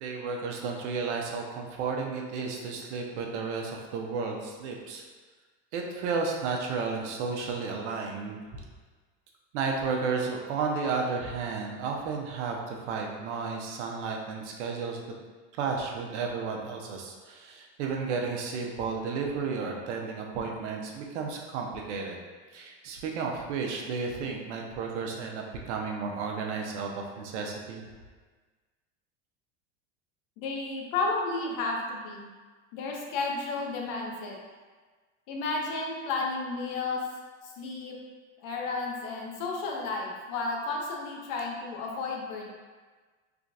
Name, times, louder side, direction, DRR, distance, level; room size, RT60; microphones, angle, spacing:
voice 1, 0.0-5.0 5.7-8.4 9.5-15.0 15.6-22.2 22.5-27.8, right 4 dB, 75° right, 1 dB, 0.8 m, -33 dB
voice 2, 30.4-32.3 32.7-34.4 35.3-37.0 37.4-38.0 38.4-42.5, left 3 dB, 65° left, -1 dB, 0.9 m, -32 dB
3.8 x 3.3 x 2.5 m, 1.4 s
supercardioid pair, 100°, 35 cm